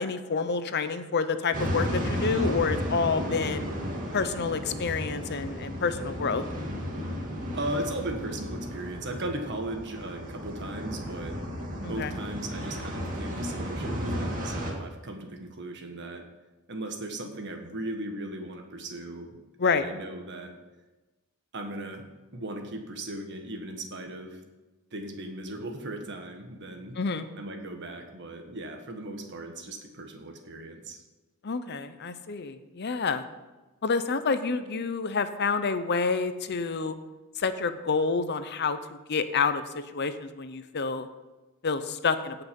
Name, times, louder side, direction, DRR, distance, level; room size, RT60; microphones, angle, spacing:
voice 1, 0.0-3.7 4.1-6.4 11.8-12.1 19.6-19.8 27.0-27.3 31.4-33.2 33.8-36.9 37.4-38.8 39.1-39.6 39.9-41.1 41.6-42.4, left 5 dB, 50° left, 11 dB, 0.7 m, -28 dB
sound 1, 1.5-14.7, equal, 40° right, 2.2 m, -33 dB
voice 2, 7.5-11.5 11.9-16.2 16.7-20.5 21.5-22.0 22.3-24.4 24.9-27.0 27.3-31.0, right 1 dB, 55° right, 4 dB, 1.6 m, -37 dB
17.5 x 5.9 x 5.3 m, 1.1 s
head